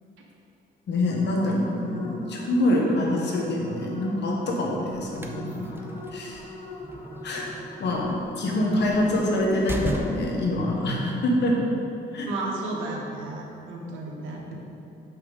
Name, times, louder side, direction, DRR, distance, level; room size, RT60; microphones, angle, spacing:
voice 1, 0.9-6.4 7.2-7.4 7.8-11.5 12.1-12.3, left 1 dB, 60° left, -1 dB, 1.4 m, -25 dB
sound 1, 1.1-10.5, left 3 dB, 30° left, 0.9 m, -41 dB
sound 2, 4.9-10.5, right 2 dB, 10° right, 0.6 m, -37 dB
voice 2, 12.3-14.5, right 2 dB, 85° right, -1 dB, 1.2 m, -33 dB
6.4 x 5.7 x 4.1 m, 2.9 s
cardioid pair, 90°, 20 cm